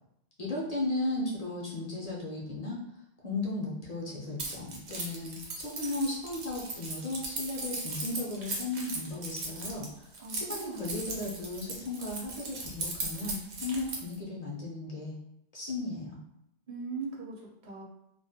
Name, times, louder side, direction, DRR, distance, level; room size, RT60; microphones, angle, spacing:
voice 1, 0.4-2.8 3.2-15.1 15.5-16.2, left 2 dB, 50° left, -4 dB, 0.5 m, -35 dB
Keys jangling, 4.4-14.2, right 3 dB, 85° right, 0.9 m, -38 dB
voice 2, 10.2-11.0 16.7-17.8, right 4 dB, 50° right, -2 dB, 0.7 m, -40 dB
2.3 x 2.1 x 2.6 m, 0.80 s
omnidirectional pair, 1.1 m